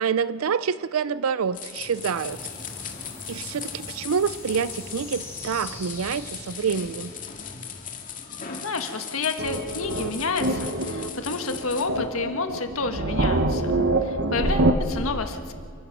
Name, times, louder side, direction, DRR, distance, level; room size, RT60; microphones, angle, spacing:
voice 1, 0.0-2.4 3.3-7.1, right 6 dB, 85° right, 16 dB, 0.5 m, -27 dB
sound 1, 1.5-11.8, left 7 dB, 40° left, 2.0 m, -38 dB
sound 2, 1.7-8.6, left 1 dB, 15° left, 4.0 m, -43 dB
voice 2, 8.5-15.5, left 3 dB, 80° left, 6 dB, 1.5 m, -30 dB
sound 3, 9.4-14.7, right 2 dB, 55° right, 1.2 m, -25 dB
28.5 x 15.5 x 6.0 m, 2.3 s
head